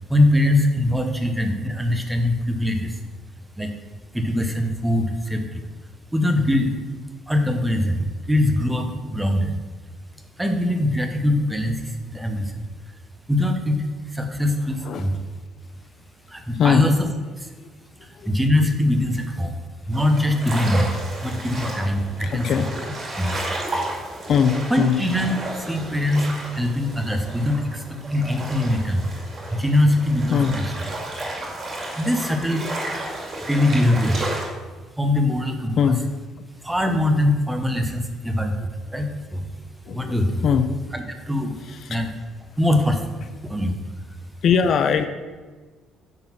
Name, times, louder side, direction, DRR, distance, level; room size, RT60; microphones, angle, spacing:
voice 1, 0.1-3.0 3.6-3.7 4.1-5.7 6.1-6.7 7.3-9.6 10.4-12.6 13.3-13.8 14.1-15.1 16.3-17.1 17.4-17.5 18.2-19.6 19.9-22.6 23.2-23.4 24.7-29.1 29.5-30.9 32.0-32.7 33.5-34.2 35.0-35.9 36.6-39.5 39.9-40.4 40.9-41.5 41.9-42.1 42.6-43.1 43.4-43.7, left 1 dB, 5° right, 5 dB, 0.7 m, -22 dB
voice 2, 16.5-16.9 18.2-18.3 22.2-22.8 24.3-25.0 30.3-30.6 35.8-36.0 39.9-40.7 41.7-42.0 44.4-45.1, left 7 dB, 45° left, 9 dB, 0.4 m, -21 dB
sound 1, 19.9-34.5, right 1 dB, 35° right, 2.2 m, -33 dB
9.1 x 3.9 x 5.8 m, 1.4 s
cardioid pair, 165°, 0 cm